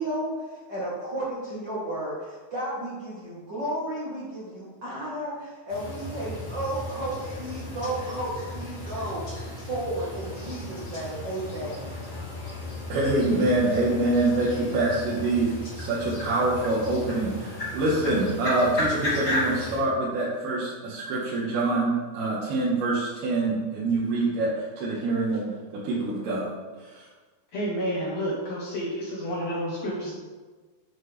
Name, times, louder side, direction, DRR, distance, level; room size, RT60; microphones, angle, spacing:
voice 1, 0.0-9.2 9.6-12.0, right 1 dB, 60° right, -8 dB, 1.1 m, -33 dB
sound 1, 5.7-19.8, left 1 dB, 25° left, 1.9 m, -34 dB
voice 2, 12.9-27.1, right 2 dB, 85° right, -7 dB, 3.2 m, -25 dB
voice 3, 27.5-30.1, equal, 70° left, -4 dB, 1.6 m, -30 dB
7.9 x 7.4 x 3.4 m, 1.3 s
omnidirectional pair, 4.4 m